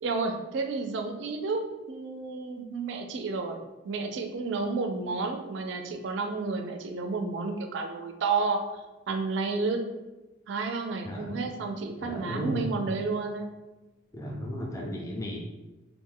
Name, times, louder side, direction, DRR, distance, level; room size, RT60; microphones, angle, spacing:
voice 1, 0.0-3.6 3.8-8.6 9.1-9.8 10.5-13.5, right 4 dB, 65° right, 4 dB, 0.3 m, -31 dB
voice 2, 11.1-11.5 12.0-12.8 14.1-15.4, equal, 15° left, 0 dB, 0.3 m, -35 dB
2.4 x 2.1 x 3.6 m, 1.1 s
head